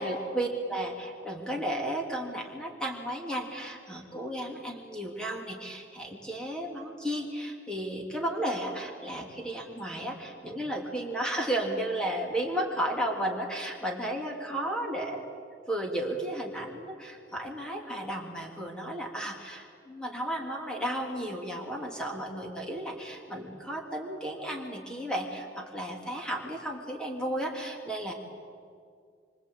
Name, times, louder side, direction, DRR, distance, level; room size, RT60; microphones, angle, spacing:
voice 1, 0.0-15.2 15.7-28.1, right 1 dB, 5° left, 0 dB, 3.2 m, -33 dB
26.0 x 25.0 x 8.7 m, 2.3 s
head